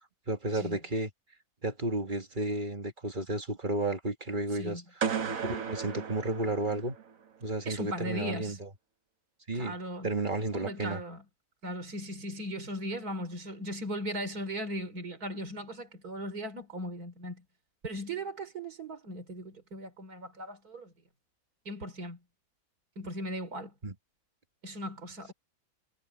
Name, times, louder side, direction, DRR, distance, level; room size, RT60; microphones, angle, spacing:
voice 1, 0.3-1.1 1.6-5.0 5.4-7.0 7.4-8.7 9.5-9.8 10.0-11.0 23.8-23.9, right 2 dB, 35° right, 1.8 m, -32 dB
voice 2, 4.5-4.8 7.7-8.6 9.5-10.1 10.5-11.2 11.6-17.4 17.8-20.9 21.7-22.2 23.0-23.7 24.6-25.3, equal, 80° right, 4.0 m, -38 dB
sound 1, 5.0-7.1, right 7 dB, 65° right, 1.6 m, -34 dB
omnidirectional pair, 1.6 m